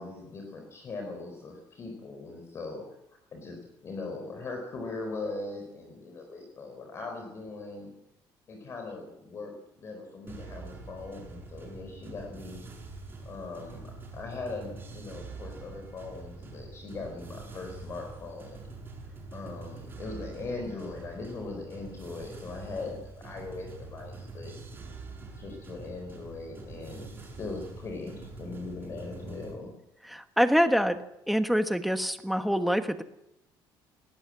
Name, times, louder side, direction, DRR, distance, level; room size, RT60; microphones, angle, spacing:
voice 1, 0.0-2.8 3.3-7.9 8.5-12.6 13.2-13.8 14.1-18.6 19.3-24.5 25.4-29.7, left 3 dB, 35° left, 3 dB, 4.4 m, -40 dB
sound 1, 10.3-29.6, right 3 dB, 25° right, 7.1 m, -45 dB
voice 2, 30.1-31.0 31.3-33.0, equal, ahead, 8 dB, 1.3 m, -25 dB
21.0 x 18.5 x 7.6 m, 0.82 s
cardioid pair, 160°, 8 cm